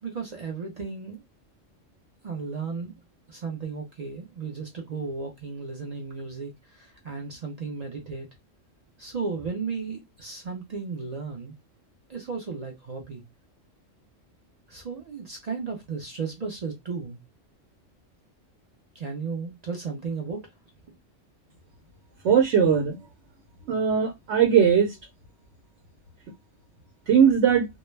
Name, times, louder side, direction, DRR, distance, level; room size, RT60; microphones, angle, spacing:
voice 1, 0.0-1.2 2.2-3.0 3.3-8.3 9.0-11.5 12.1-13.2 14.7-17.2 18.9-20.5, right 4 dB, 50° right, 0.5 m, -34 dB
voice 2, 22.2-23.0 23.7-24.9 27.1-27.7, right 7 dB, 70° right, 0.9 m, -19 dB
2.3 x 2.1 x 3.1 m
omnidirectional pair, 1.3 m